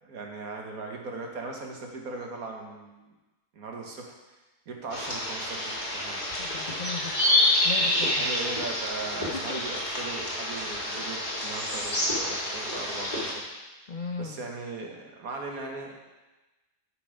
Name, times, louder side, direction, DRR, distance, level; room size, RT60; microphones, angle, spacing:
voice 1, 0.0-3.1 3.5-4.1 4.7-6.2 8.1-13.4 13.8-13.9 14.2-16.0, right 3 dB, 80° right, 1 dB, 1.8 m, -38 dB
sound 1, 4.9-13.3, left 1 dB, 30° left, 2.2 m, -28 dB
voice 2, 6.4-7.3 7.6-8.3 9.3-9.6 13.9-14.5, left 4 dB, 80° left, 3 dB, 0.4 m, -37 dB
12.0 x 4.8 x 5.1 m, 1.1 s
omnidirectional pair, 1.5 m